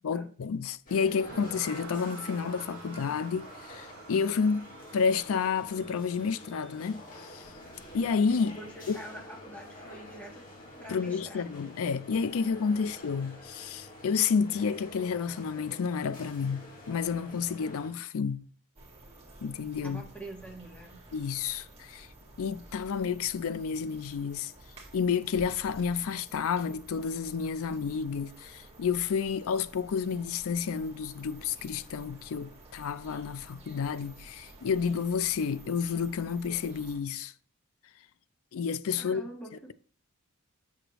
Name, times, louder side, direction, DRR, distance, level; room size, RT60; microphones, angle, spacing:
voice 1, 0.0-7.5 7.9-8.6 8.9-9.0 10.9-18.5 19.4-20.0 21.1-22.1 22.4-24.5 24.9-37.3 38.5-39.2, left 6 dB, 65° left, 0.4 m, -30 dB
sound 1, 0.9-17.9, left 1 dB, 40° left, 2.1 m, -48 dB
sound 2, 1.3-8.4, right 6 dB, 45° right, 0.7 m, -50 dB
voice 2, 8.6-10.4 10.8-11.7 19.8-21.0 39.0-39.7, right 1 dB, 5° left, 1.4 m, -45 dB
sound 3, 18.8-37.0, right 2 dB, 30° right, 1.8 m, -52 dB
7.8 x 6.4 x 3.0 m
head